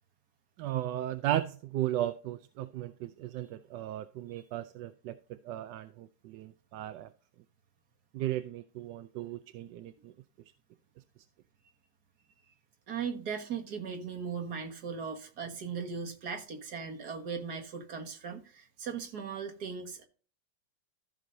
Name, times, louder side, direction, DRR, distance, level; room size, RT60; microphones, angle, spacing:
voice 1, 0.6-5.2 5.4-7.1 8.1-10.1, right 13 dB, 85° right, 1.2 m, -35 dB
voice 2, 12.9-20.0, right 6 dB, 65° right, 2.0 m, -38 dB
14.5 x 6.2 x 2.6 m
omnidirectional pair, 1.9 m